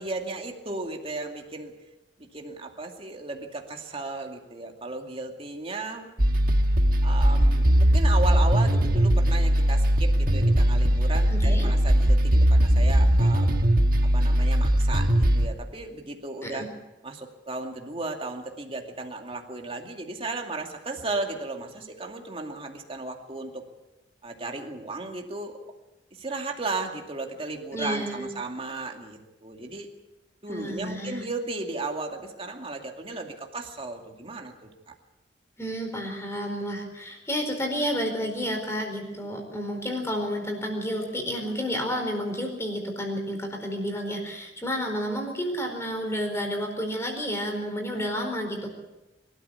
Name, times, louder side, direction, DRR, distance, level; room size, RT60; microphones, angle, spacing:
voice 1, 0.0-1.7 2.2-6.1 7.0-13.6 14.0-16.7 17.0-23.6 24.2-25.6 26.1-29.9 30.4-34.9, right 3 dB, 30° right, 2 dB, 2.4 m, -35 dB
sound 1, 6.2-15.5, equal, 50° right, 1.6 m, -20 dB
voice 2, 11.3-11.7 16.4-16.7 27.7-28.3 30.5-31.2 35.6-48.7, equal, 15° left, 3 dB, 4.6 m, -30 dB
24.0 x 13.0 x 8.3 m, 1.0 s
head